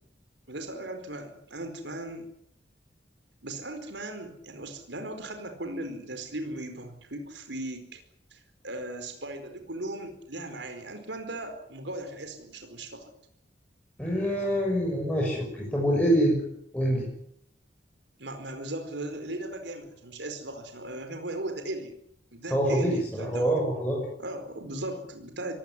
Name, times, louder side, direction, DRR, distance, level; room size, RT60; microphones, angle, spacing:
voice 1, 0.5-2.3 3.4-8.0 8.3-13.1 18.2-21.9 22.3-23.5 24.2-25.5, right 1 dB, 75° right, 7 dB, 4.6 m, -37 dB
voice 2, 14.0-16.4 16.7-17.0 22.5-24.0, equal, 10° left, -3 dB, 6.6 m, -25 dB
24.0 x 18.0 x 9.7 m, 0.70 s
head